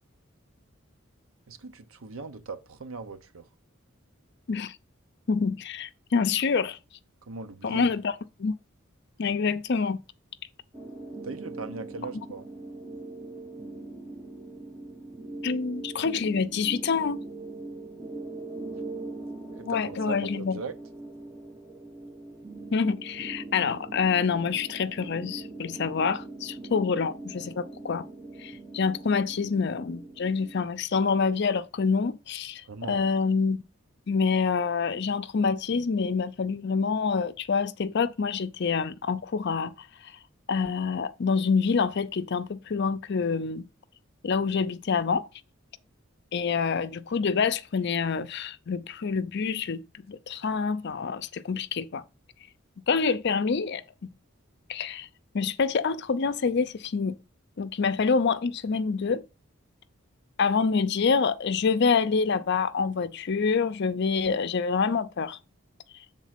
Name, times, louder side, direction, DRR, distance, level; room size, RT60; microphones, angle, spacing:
voice 1, 1.5-3.5 7.2-7.9 11.2-12.4 19.5-20.7 32.7-33.1, right 4 dB, 80° right, 0.7 m, -39 dB
voice 2, 5.3-6.8 7.6-8.1 8.4-8.5 9.2-10.0 15.4-17.2 19.7-20.6 22.7-28.1 28.4-32.6 32.9-33.6 34.1-39.7 40.5-43.7 44.2-45.2 46.3-52.0 52.9-53.8 54.7-55.1 55.3-57.2 57.6-59.2 60.4-65.4, left 5 dB, 55° left, 0.5 m, -26 dB
sound 1, 10.7-30.6, right 2 dB, 20° right, 1.1 m, -41 dB
7.2 x 3.8 x 5.8 m
head